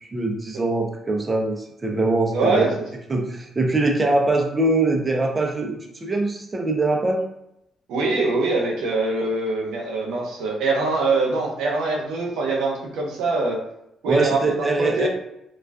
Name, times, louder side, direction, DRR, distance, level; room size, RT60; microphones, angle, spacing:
voice 1, 0.0-2.7 3.1-7.2 14.1-15.1, right 2 dB, 25° right, 1 dB, 0.5 m, -22 dB
voice 2, 2.3-2.7 7.9-13.6 14.0-15.1, right 3 dB, 90° right, -1 dB, 0.6 m, -23 dB
2.4 x 2.3 x 2.3 m, 0.81 s
cardioid pair, 90°, 0 cm